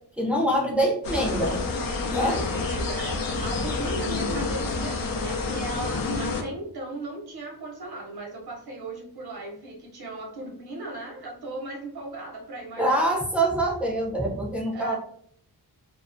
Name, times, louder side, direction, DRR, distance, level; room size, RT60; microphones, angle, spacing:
voice 1, 0.2-1.6 2.1-2.4 12.8-14.9, right 1 dB, 5° right, -2 dB, 0.4 m, -24 dB
sound 1, 1.0-6.4, left 3 dB, 60° left, 0.5 m, -28 dB
voice 2, 2.2-13.1 14.7-15.0, right 2 dB, 70° right, -1 dB, 0.7 m, -37 dB
2.4 x 2.3 x 2.4 m, 0.64 s
wide cardioid pair, 175°, 39 cm